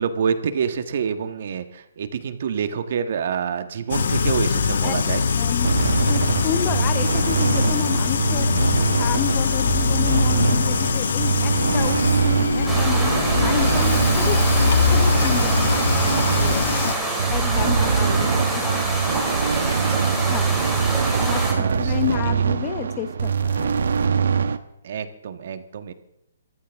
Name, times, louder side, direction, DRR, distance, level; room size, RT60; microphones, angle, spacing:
voice 1, 0.0-5.6 19.9-20.8 21.1-22.0 22.4-22.5 24.8-25.9, right 7 dB, 50° right, 9 dB, 1.5 m, -28 dB
sound 1, 3.9-16.9, left 5 dB, 65° left, 1.4 m, -22 dB
voice 2, 5.3-5.7 6.1-8.6 9.0-14.4 14.9-16.7 17.3-18.5 18.7-19.7 20.3-20.7 21.2-24.1, left 13 dB, 25° left, 12 dB, 0.8 m, -31 dB
sound 2, 5.6-24.6, right 6 dB, 70° right, 1.1 m, -23 dB
sound 3, 12.7-21.5, right 1 dB, ahead, 3.0 m, -27 dB
24.0 x 14.5 x 3.6 m, 0.81 s
hypercardioid pair, 165°, 0 cm